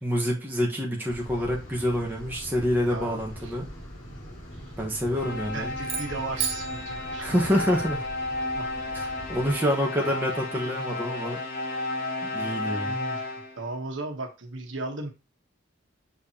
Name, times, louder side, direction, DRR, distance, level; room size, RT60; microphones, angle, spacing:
voice 1, 0.0-3.7 4.8-5.7 7.2-8.0 8.9-11.4 12.3-13.0, equal, 10° right, 1.4 m, -27 dB
sound 1, 1.1-9.5, equal, 75° left, 3.7 m, -43 dB
voice 2, 2.9-3.6 5.5-7.4 8.5-8.7 10.6-11.0 12.4-13.2 13.6-15.1, right 2 dB, 75° right, 1.3 m, -36 dB
sound 2, 5.1-13.7, left 2 dB, 50° left, 2.9 m, -33 dB
sound 3, 5.8-8.1, right 8 dB, 30° right, 0.7 m, -35 dB
6.8 x 4.7 x 2.9 m
head